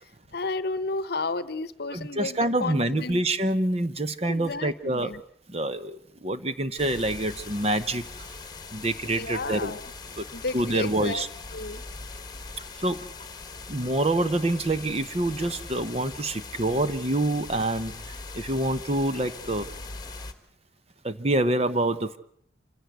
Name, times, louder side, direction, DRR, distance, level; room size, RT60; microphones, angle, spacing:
voice 1, 0.3-3.2 4.2-5.2 9.1-9.9 10.3-11.2 11.5-11.8, left 3 dB, 55° left, 16 dB, 0.9 m, -32 dB
voice 2, 1.9-5.1 5.5-8.0 8.7-9.7 10.2-10.3 10.5-11.3 12.8-13.0 13.7-17.9 18.3-19.7 21.0-22.2, right 1 dB, 35° right, 11 dB, 1.0 m, -26 dB
sound 1, 6.8-20.3, left 4 dB, 20° left, 1.6 m, -41 dB
27.0 x 16.5 x 8.1 m, 0.66 s
head